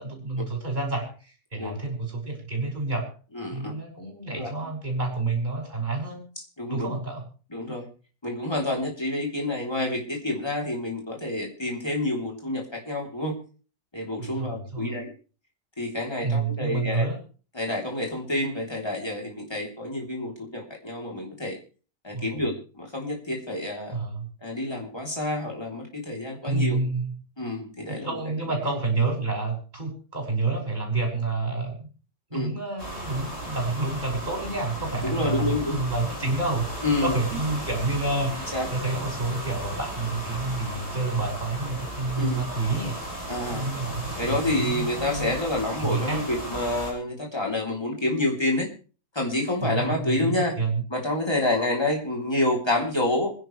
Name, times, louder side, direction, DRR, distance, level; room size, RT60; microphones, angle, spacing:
voice 1, 0.0-3.1 3.5-6.2 6.7-7.3 14.3-15.0 16.2-17.2 22.1-22.4 23.9-24.3 26.4-27.2 27.9-31.9 32.3-43.0 43.5-45.3 45.8-46.2 49.6-50.8, right 3 dB, 25° right, -1 dB, 6.3 m, -29 dB
voice 2, 3.3-3.7 4.3-4.5 6.6-6.9 7.5-7.9 8.2-13.3 13.9-15.1 15.8-17.1 17.5-21.6 22.0-24.0 24.4-26.8 27.4-28.5 32.3-32.5 35.0-35.8 36.8-37.2 38.5-38.7 42.2-42.4 43.3-43.7 44.2-48.7 49.1-50.6 50.9-53.3, left 1 dB, 15° left, 0 dB, 3.5 m, -28 dB
sound 1, 32.8-46.9, right 1 dB, 40° left, 6.1 m, -35 dB
26.5 x 11.0 x 3.3 m, 0.38 s
omnidirectional pair, 1.8 m